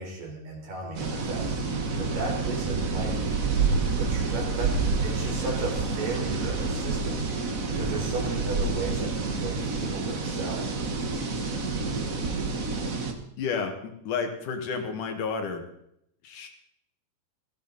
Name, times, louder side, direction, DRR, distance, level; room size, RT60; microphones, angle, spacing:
voice 1, 0.0-1.5 2.0-3.2 4.0-7.2 7.7-10.6, right 3 dB, 85° right, -1 dB, 5.8 m, -35 dB
sound 1, 0.9-13.1, right 4 dB, 55° right, 0.9 m, -28 dB
voice 2, 13.4-13.7 14.0-15.6 16.2-16.5, left 5 dB, 70° left, 5 dB, 3.2 m, -30 dB
17.5 x 15.0 x 4.1 m, 0.74 s
omnidirectional pair, 3.8 m